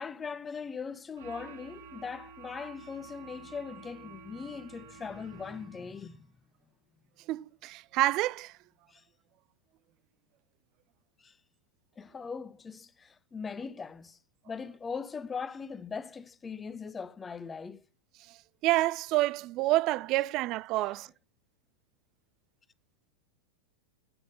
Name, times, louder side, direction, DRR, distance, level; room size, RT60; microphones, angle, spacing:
voice 1, 0.0-6.3 8.9-9.0 11.2-11.3 12.0-14.2 14.5-17.8 20.8-21.0, left 5 dB, 20° left, 0.7 m, -40 dB
sound 1, 1.2-6.0, right 5 dB, 65° right, 1.6 m, -50 dB
voice 2, 7.3-8.5 18.6-21.1, right 17 dB, 45° right, 0.4 m, -28 dB
8.7 x 8.0 x 6.6 m
hypercardioid pair, 100°, 0 cm